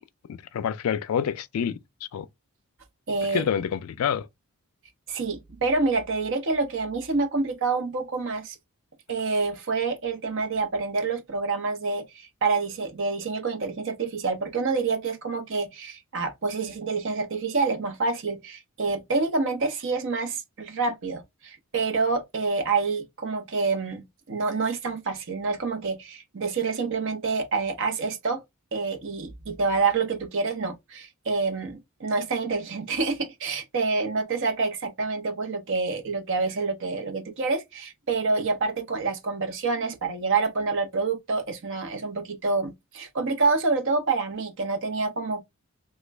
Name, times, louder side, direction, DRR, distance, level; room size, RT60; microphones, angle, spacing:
voice 1, 0.3-1.8 2.1-2.3 3.3-4.3, left 8 dB, 70° left, 0.3 m, -27 dB
voice 2, 3.1-3.4 5.1-8.6 9.1-28.4 28.7-45.4, right 4 dB, 60° right, 0.7 m, -27 dB
3.1 x 2.2 x 3.2 m
head